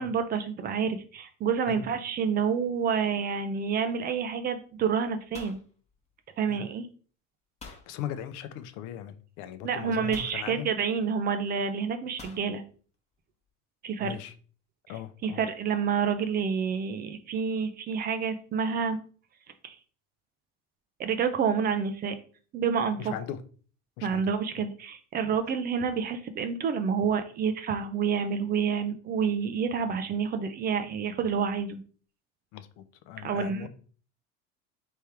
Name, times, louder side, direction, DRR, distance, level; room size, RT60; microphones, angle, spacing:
voice 1, 0.0-5.6 6.4-6.9 9.6-12.6 13.8-14.2 15.2-19.0 19.6-19.7 21.0-22.2 22.5-23.1 24.0-31.8 33.2-33.7, right 6 dB, 25° right, 0.4 m, -28 dB
sound 1, 3.8-4.0 4.3-4.7 5.0-6.6 7.6-7.9 9.1-9.2 10.1-10.5 12.2-12.5, left 4 dB, 15° left, 1.0 m, -47 dB
voice 2, 7.6-10.7 14.0-14.3 14.9-15.4 23.0-23.4 24.0-24.2 32.5-33.7, left 10 dB, 55° left, 0.6 m, -39 dB
3.5 x 3.3 x 4.4 m
supercardioid pair, 130°, 38 cm